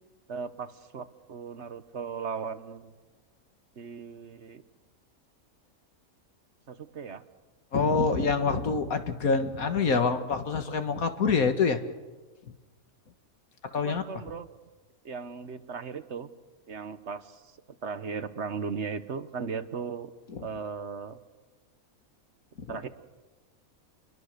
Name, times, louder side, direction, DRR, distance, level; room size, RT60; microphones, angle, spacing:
voice 1, 0.3-2.9 3.8-4.6 6.7-7.2 13.8-14.5 15.0-16.3 16.7-17.4 17.8-20.1 20.4-21.2 22.7-22.9, right 5 dB, 55° right, 12 dB, 1.3 m, -37 dB
voice 2, 7.7-11.8 13.7-14.0 20.3-20.5, left 4 dB, 80° left, 7 dB, 2.0 m, -26 dB
29.5 x 22.0 x 6.7 m, 1.2 s
omnidirectional pair, 1.5 m